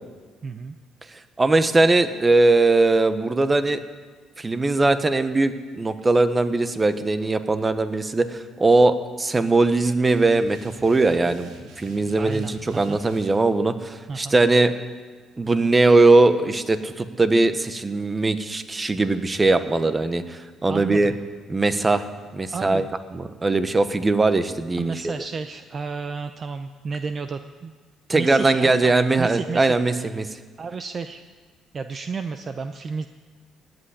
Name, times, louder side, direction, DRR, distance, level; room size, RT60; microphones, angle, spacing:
voice 1, 0.4-0.7 12.2-13.0 14.1-14.3 20.7-21.2 22.5-22.9 24.8-27.7 28.1-30.1 30.6-31.2 31.7-33.1, right 5 dB, 35° right, 9 dB, 0.6 m, -32 dB
voice 2, 1.4-3.8 4.4-14.7 15.4-21.1 21.5-22.1 22.3-22.8 23.1-25.1 28.1-30.3, right 2 dB, 20° right, 11 dB, 0.9 m, -20 dB
sound 1, 10.1-13.3, equal, 85° right, 3.0 m, -47 dB
17.0 x 8.0 x 9.9 m, 1.5 s
cardioid pair, 120°, 0 cm